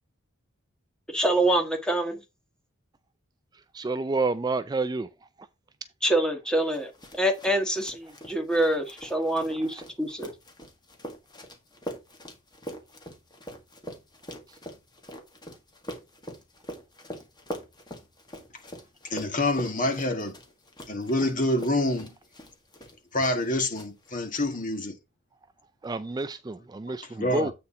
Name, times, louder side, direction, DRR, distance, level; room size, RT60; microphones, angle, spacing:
voice 1, 1.1-2.2 6.0-6.9 7.2-10.3, right 1 dB, 5° left, 1.5 m, -25 dB
voice 2, 3.7-5.1 9.6-9.7 25.8-27.5, right 3 dB, 20° right, 0.3 m, -29 dB
sound 1, 6.7-23.5 23.7-24.4, equal, 20° left, 1.8 m, -43 dB
voice 3, 19.0-20.4 20.9-22.1 23.1-25.0 27.2-27.5, left 1 dB, 40° left, 1.9 m, -27 dB
8.3 x 4.3 x 4.9 m
head